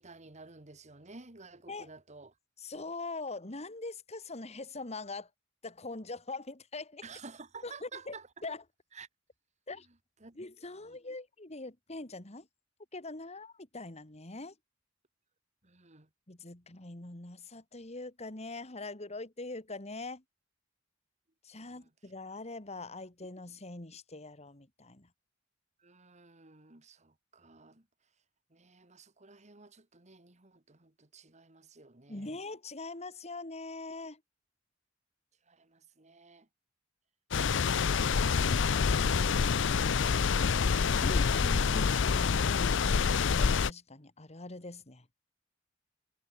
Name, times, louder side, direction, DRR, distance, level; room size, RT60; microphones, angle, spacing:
voice 1, 0.0-2.3 7.0-8.3 8.9-9.1 10.2-10.4 10.9-11.0 15.6-16.1 21.6-21.8 25.8-27.9 28.5-32.4 35.5-36.5, right 4 dB, 35° right, 2.3 m, -53 dB
voice 2, 2.6-5.3 5.6-7.0 7.6-8.6 9.7-9.9 10.4-12.5 12.9-14.5 16.3-20.2 21.4-25.1 32.1-34.2 41.0-42.4 42.7-45.1, left 2 dB, 35° left, 2.2 m, -42 dB
sound 1, 37.3-43.7, left 5 dB, 65° left, 0.6 m, -27 dB
head